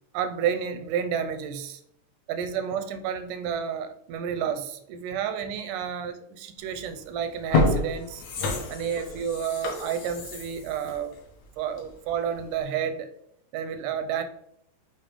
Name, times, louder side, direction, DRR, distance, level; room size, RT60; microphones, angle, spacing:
voice 1, 0.1-1.8 2.3-8.2 8.7-11.2 11.6-13.1 13.5-14.2, right 8 dB, 85° right, 2.1 m, -30 dB
sound 1, 6.7-6.9 7.3-12.0 12.4-12.5, left 3 dB, 65° left, 2.1 m, -28 dB
6.9 x 3.0 x 5.1 m
omnidirectional pair, 3.7 m